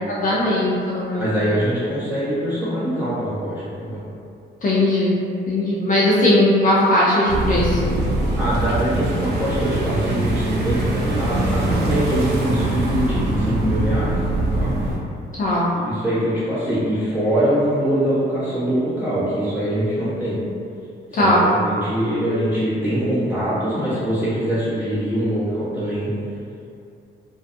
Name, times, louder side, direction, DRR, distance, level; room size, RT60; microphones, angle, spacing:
voice 1, 0.1-1.3 4.6-5.2 5.5-7.9 15.4-15.7 21.1-21.4, left 1 dB, 40° left, -7 dB, 0.5 m, -18 dB
voice 2, 1.2-4.0 8.4-14.2 14.5-14.7 15.5-20.4 21.1-26.1, equal, 10° right, -12 dB, 1.2 m, -23 dB
sound 1, 7.3-15.0, right 1 dB, 55° right, 0.5 m, -22 dB
2.5 x 2.3 x 2.6 m, 2.4 s
cardioid pair, 90°, 20 cm